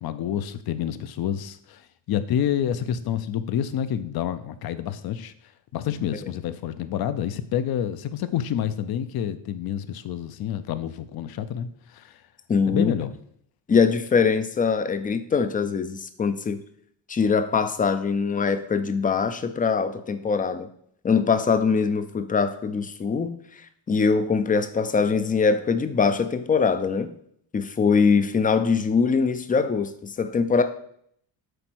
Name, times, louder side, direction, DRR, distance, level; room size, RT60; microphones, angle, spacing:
voice 1, 0.0-1.8 2.1-5.3 5.7-12.1 12.7-13.1, left 9 dB, 55° left, 13 dB, 0.6 m, -28 dB
voice 2, 12.5-12.9 13.7-16.6 17.1-20.7 21.0-23.4 23.9-27.1 27.5-30.6, left 5 dB, 20° left, 10 dB, 0.4 m, -22 dB
8.0 x 4.0 x 6.1 m, 0.68 s
cardioid pair, 175°, 45 cm